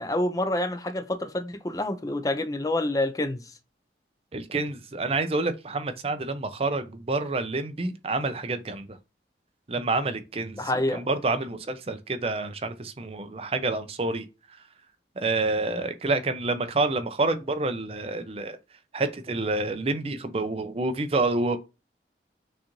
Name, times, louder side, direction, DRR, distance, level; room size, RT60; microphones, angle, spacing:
voice 1, 0.0-3.5 10.6-11.0, left 1 dB, 20° left, 0.4 m, -27 dB
voice 2, 4.3-9.0 9.7-10.6 10.9-14.3 15.2-18.6 18.9-21.6, right 3 dB, 35° right, 0.5 m, -28 dB
6.2 x 2.5 x 3.0 m
head